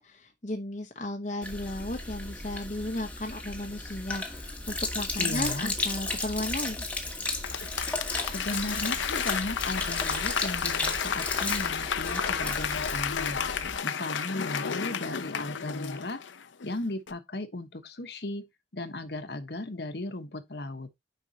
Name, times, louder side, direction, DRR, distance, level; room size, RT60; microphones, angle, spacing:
voice 1, 0.0-6.8, left 1 dB, 40° left, 0.9 m, -35 dB
Sink (filling or washing), 1.4-13.8, left 2 dB, 10° left, 1.3 m, -34 dB
voice 2, 5.2-5.7 8.3-13.4 13.8-16.2 16.6-20.9, left 2 dB, 60° left, 1.2 m, -36 dB
Applause / Crowd, 7.3-16.7 17.1-17.2, left 7 dB, 90° left, 0.7 m, -32 dB
9.3 x 5.4 x 2.8 m
head